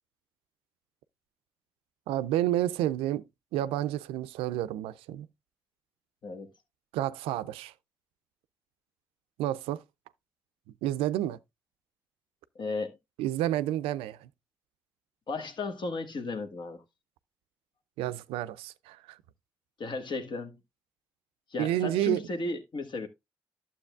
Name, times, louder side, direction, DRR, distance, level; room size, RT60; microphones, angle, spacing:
voice 1, 2.1-3.3 3.5-5.3 6.9-7.7 9.4-9.8 10.8-11.4 13.2-14.3 18.0-19.2 21.6-22.2, right 13 dB, 85° right, 0.4 m, -30 dB
voice 2, 12.5-13.0 15.3-16.8 19.8-20.5 21.5-23.1, left 3 dB, 55° left, 1.3 m, -35 dB
11.5 x 7.0 x 2.3 m
hypercardioid pair, 40°, 9 cm